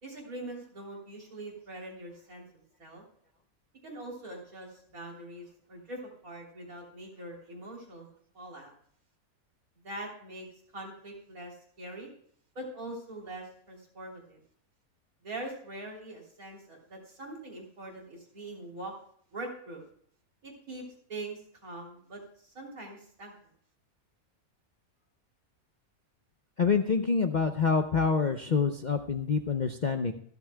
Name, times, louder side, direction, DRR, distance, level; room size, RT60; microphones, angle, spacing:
voice 1, 0.0-2.5 2.8-3.0 3.8-8.1 8.3-8.7 9.8-10.5 10.7-12.1 12.6-14.4 15.2-18.9 19.3-19.8 20.4-20.8 21.1-23.3, right 2 dB, 70° right, -1 dB, 3.7 m, -43 dB
voice 2, 26.6-30.1, left 5 dB, 45° left, 6 dB, 0.6 m, -26 dB
25.0 x 8.4 x 2.2 m, 0.62 s
omnidirectional pair, 1.5 m